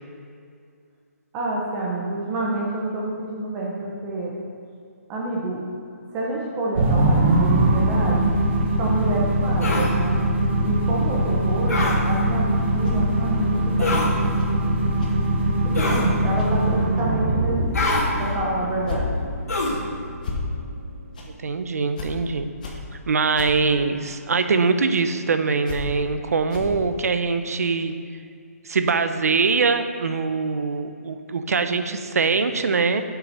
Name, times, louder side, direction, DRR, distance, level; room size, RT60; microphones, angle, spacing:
voice 1, 1.3-3.7 4.0-4.3 5.1-5.6 6.1-8.3 8.8-10.2 10.6-12.5 12.7-14.0 15.6-19.1, right 2 dB, 10° right, -3 dB, 0.7 m, -28 dB
sound 1, 6.8-21.2, right 1 dB, 40° right, 1.3 m, -22 dB
sound 2, 9.6-9.9 11.7-12.0 13.8-14.1 15.7-16.1 17.7-18.1 19.5-19.8, left 2 dB, 75° left, 2.1 m, -24 dB
sound 3, 12.8-13.0 14.4-14.5 15.0-15.1 15.7-15.9 16.4-16.5 17.0-17.1 17.8-18.0 18.3-18.4 18.9-19.0 19.6-19.7 20.2-20.4 21.1-21.2 21.9-22.1 22.6-22.7 23.3-23.5 24.0-24.1 25.0-25.1 25.7-25.8 26.5-26.8, left 4 dB, 30° left, 1.1 m, -33 dB
voice 2, 21.2-22.5 23.1-27.9 28.6-33.0, right 4 dB, 70° right, 9 dB, 0.7 m, -23 dB
7.7 x 5.8 x 5.5 m, 2.3 s
hypercardioid pair, 175°, 9 cm